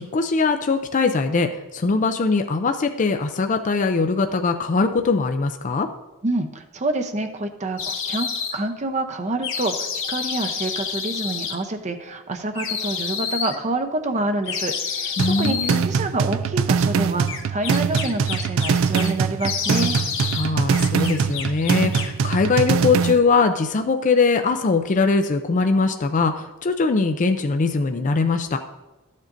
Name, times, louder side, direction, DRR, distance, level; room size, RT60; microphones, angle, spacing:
voice 1, 0.0-5.9 15.2-15.9 20.3-28.6, left 4 dB, 35° left, 6 dB, 0.4 m, -21 dB
voice 2, 6.2-20.0, right 2 dB, 35° right, 6 dB, 0.7 m, -27 dB
sound 1, 7.8-8.5 9.4-11.5 12.5-13.6 14.4-15.8 17.3-19.1 19.4-20.5 20.7-22.2, left 6 dB, 65° left, 1.2 m, -29 dB
sound 2, 15.2-23.2, right 6 dB, 65° right, 0.4 m, -22 dB
13.5 x 7.4 x 2.6 m, 1.1 s
head